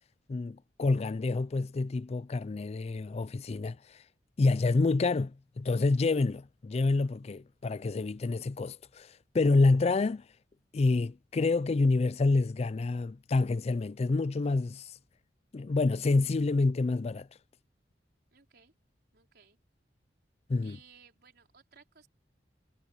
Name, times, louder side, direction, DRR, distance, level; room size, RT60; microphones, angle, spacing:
voice 1, 0.3-4.0 4.4-10.2 10.7-14.9 15.5-17.3 20.5-20.8, left 3 dB, 35° left, 0.4 m, -28 dB
voice 2, 18.3-18.7 19.1-19.6 20.6-22.1, right 6 dB, 65° right, 4.5 m, -59 dB
head